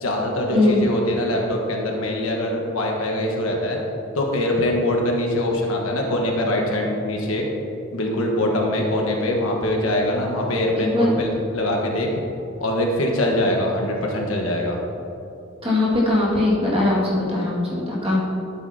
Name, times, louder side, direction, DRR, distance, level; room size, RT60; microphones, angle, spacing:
voice 1, 0.0-3.8 4.1-7.5 7.9-12.1 12.6-14.8, left 1 dB, 80° left, 0 dB, 1.4 m, -23 dB
voice 2, 10.7-11.2 15.6-18.2, left 2 dB, 25° right, -6 dB, 2.0 m, -20 dB
12.0 x 8.4 x 2.8 m, 2.9 s
head